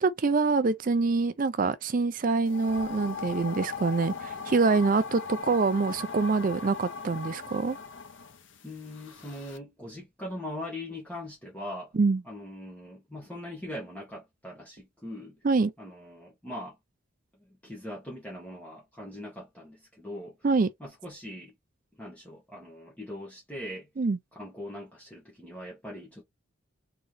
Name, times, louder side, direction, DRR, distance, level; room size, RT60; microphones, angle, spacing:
voice 1, 0.0-7.8 11.9-12.2 15.4-15.7 20.4-20.7 24.0-24.2, right 4 dB, 40° right, 0.4 m, -25 dB
sound 1, 2.4-9.6, left 5 dB, 65° left, 0.8 m, -39 dB
voice 2, 8.6-12.0 12.2-15.4 15.8-16.8 17.4-20.4 20.8-21.5 22.0-23.9 24.3-26.2, left 1 dB, 5° left, 1.6 m, -41 dB
3.9 x 3.9 x 3.3 m
head